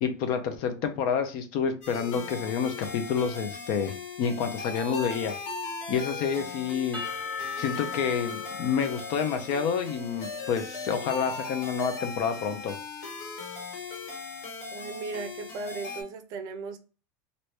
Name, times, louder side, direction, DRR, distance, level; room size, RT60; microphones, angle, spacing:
voice 1, 0.0-5.3 5.9-7.0 7.6-12.8, left 6 dB, 50° left, 0.6 m, -29 dB
sound 1, 1.8-16.0, left 4 dB, 90° left, 1.5 m, -38 dB
Percussion / Church bell, 6.9-10.9, left 5 dB, 15° left, 1.2 m, -39 dB
voice 2, 14.7-16.8, right 4 dB, 45° right, 0.5 m, -36 dB
2.9 x 2.6 x 3.3 m
supercardioid pair, 155°, 9 cm